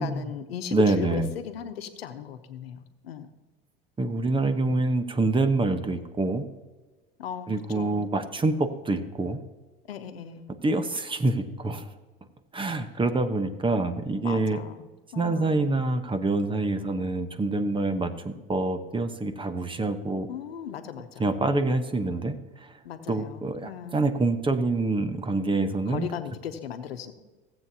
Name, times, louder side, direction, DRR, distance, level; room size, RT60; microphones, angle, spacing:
voice 1, 0.0-2.8 3.0-3.3 7.2-8.1 9.9-10.5 14.2-14.9 15.1-15.7 20.3-21.3 22.8-24.1 25.9-27.1, left 8 dB, 90° left, 9 dB, 1.0 m, -37 dB
voice 2, 0.7-1.3 4.0-6.5 7.5-9.4 10.6-11.9 12.5-14.6 15.2-20.3 21.2-22.7 23.1-26.1, right 2 dB, 15° right, 10 dB, 1.0 m, -26 dB
16.0 x 7.9 x 2.9 m, 1.2 s
hypercardioid pair, 90°, 29 cm